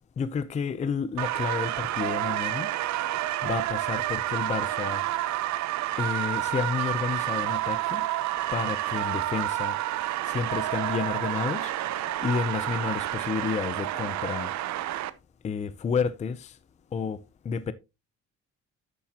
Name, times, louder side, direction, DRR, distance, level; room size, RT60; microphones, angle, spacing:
voice 1, 0.2-2.7 3.4-5.3 6.0-8.1 8.5-9.8 10.3-14.8 15.4-16.5 16.9-17.7, left 6 dB, 25° left, 0.5 m, -31 dB
sound 1, 1.2-15.1, right 14 dB, 65° right, 0.8 m, -29 dB
12.0 x 8.5 x 2.8 m
cardioid pair, 150°, 31 cm